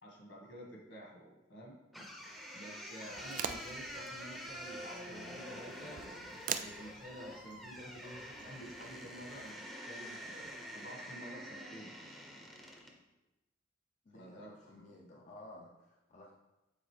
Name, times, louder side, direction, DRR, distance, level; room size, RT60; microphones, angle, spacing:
voice 1, 0.0-1.8 2.5-6.0 6.6-11.9 14.1-14.8, equal, 75° left, -1 dB, 1.8 m, -50 dB
sound 1, 1.9-13.0, equal, ahead, 0.7 m, -47 dB
sound 2, 3.1-9.5, right 8 dB, 45° right, 0.3 m, -45 dB
voice 2, 14.0-16.3, left 1 dB, 40° left, -1 dB, 0.5 m, -54 dB
7.8 x 4.1 x 3.3 m, 1.0 s
head